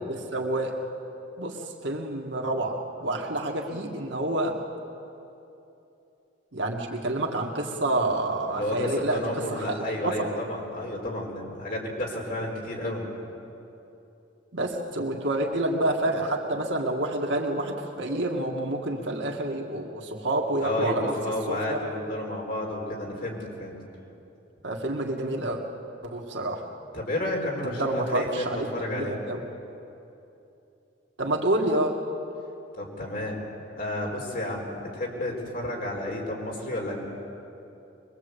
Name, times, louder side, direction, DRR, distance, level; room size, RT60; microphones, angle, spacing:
voice 1, 0.1-0.8 1.4-1.6 1.8-4.6 6.5-9.2 9.5-9.7 10.0-10.3 14.5-21.1 21.5-21.8 24.6-25.6 26.0-26.7 27.6-28.7 28.9-29.4 31.2-31.9, right 1 dB, 75° right, 0 dB, 2.0 m, -28 dB
voice 2, 8.5-13.0 20.6-23.8 26.9-29.2 32.7-33.4 33.8-37.0, left 1 dB, 50° left, -1 dB, 4.3 m, -31 dB
23.5 x 22.0 x 8.3 m, 2.9 s
head